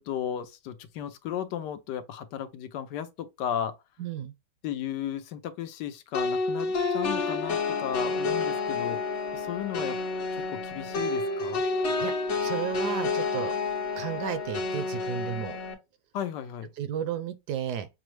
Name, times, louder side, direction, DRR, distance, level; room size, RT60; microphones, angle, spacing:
voice 1, 0.0-3.8 4.6-10.0 10.5-11.6 16.1-16.7, left 9 dB, 80° left, 1.2 m, -35 dB
voice 2, 4.0-4.3 12.0-12.1 12.4-13.5 13.9-15.6 16.8-17.9, right 9 dB, 75° right, 1.1 m, -33 dB
sound 1, 6.1-15.7, left 4 dB, 45° left, 1.2 m, -29 dB
6.0 x 2.0 x 3.1 m
omnidirectional pair, 1.9 m